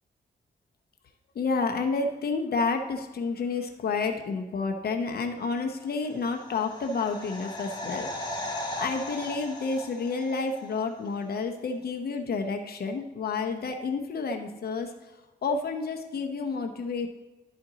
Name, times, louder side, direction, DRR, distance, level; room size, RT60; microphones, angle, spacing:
voice 1, 1.3-8.1 8.3-14.9 15.4-17.1, left 4 dB, 65° left, 4 dB, 0.8 m, -30 dB
sound 1, 6.0-10.8 11.1-11.2, left 1 dB, 25° left, 1.7 m, -37 dB
12.0 x 4.3 x 3.9 m, 1.1 s
cardioid pair, 85°, 17 cm